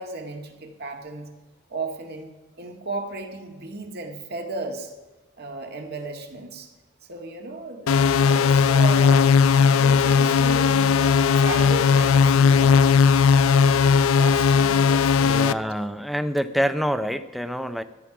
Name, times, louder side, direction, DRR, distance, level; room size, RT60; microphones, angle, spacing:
voice 1, 0.0-1.3 1.7-2.3 2.6-4.9 5.4-6.7 7.1-9.3 9.7-12.8 13.3-15.6, right 3 dB, 50° right, 4 dB, 1.9 m, -35 dB
sound 1, 7.9-15.5, left 6 dB, 90° left, 0.4 m, -17 dB
voice 2, 15.2-17.8, equal, ahead, 11 dB, 0.5 m, -26 dB
14.0 x 9.7 x 6.0 m, 1.2 s
head